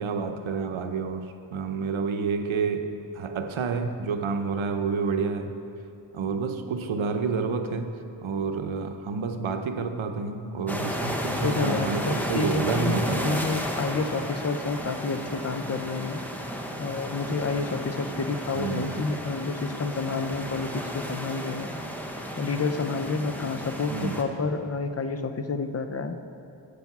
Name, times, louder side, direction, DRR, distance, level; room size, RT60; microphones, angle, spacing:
voice 1, 0.0-5.6 6.1-7.9 8.2-13.5 18.5-19.0 23.9-24.2, right 5 dB, 80° right, 7 dB, 0.8 m, -29 dB
sound 1, 10.7-24.2, equal, 5° left, 0.9 m, -33 dB
voice 2, 11.4-16.2 16.8-21.7 22.4-26.2, left 4 dB, 35° left, 8 dB, 0.6 m, -29 dB
10.5 x 8.6 x 5.9 m, 2.7 s
wide cardioid pair, 130°, 47 cm